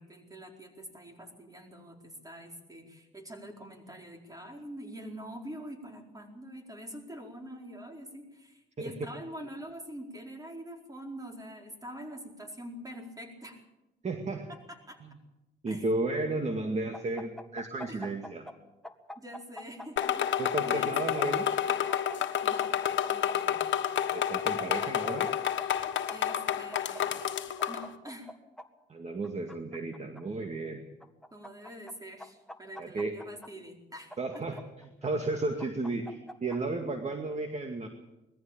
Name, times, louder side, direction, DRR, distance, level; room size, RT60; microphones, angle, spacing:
voice 1, 0.0-13.6 14.5-15.0 15.7-15.9 17.9-18.0 19.2-21.0 21.7-21.8 22.4-22.7 23.1-23.6 26.1-27.1 27.7-28.3 31.3-34.2, equal, 20° right, 3 dB, 4.5 m, -45 dB
voice 2, 14.0-14.5 15.0-15.2 15.6-18.5 20.4-21.5 23.4-23.6 24.1-25.3 28.9-30.8 32.8-33.2 34.2-37.9, right 2 dB, 35° right, 5 dB, 2.1 m, -33 dB
sound 1, 16.9-18.6 18.8-20.7 21.2-23.4 24.2-25.3 25.6-25.7 26.1-27.0 27.6-28.7 29.2-30.2 31.0-31.9 32.2-33.5 34.1-35.1 35.6-36.6, left 1 dB, ahead, 1.7 m, -44 dB
sound 2, 20.0-27.9, left 10 dB, 70° left, 1.5 m, -30 dB
20.5 x 14.5 x 8.8 m, 1.0 s
cardioid pair, 90°, 20 cm